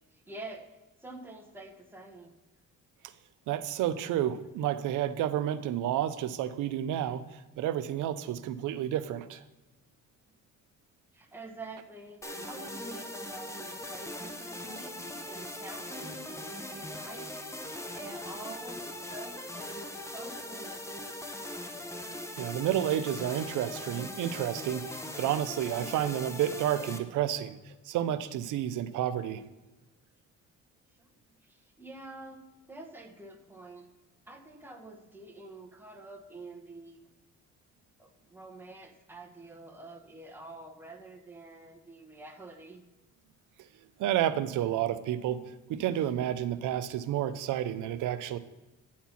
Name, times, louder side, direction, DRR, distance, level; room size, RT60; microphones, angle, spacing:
voice 1, 0.1-0.7 1.0-2.3 11.1-17.3 17.7-20.8 31.0-31.1 31.4-32.4 32.7-33.9 34.3-37.0 38.0-42.8, right 2 dB, 5° right, 2 dB, 1.2 m, -47 dB
voice 2, 3.5-9.4 22.4-27.6 27.9-29.4 44.0-45.4 45.7-48.4, right 11 dB, 85° right, 12 dB, 0.6 m, -30 dB
sound 1, 12.2-27.0, left 1 dB, 10° left, 0.8 m, -40 dB
9.3 x 4.4 x 5.7 m, 1.1 s
cardioid pair, 90°, 30 cm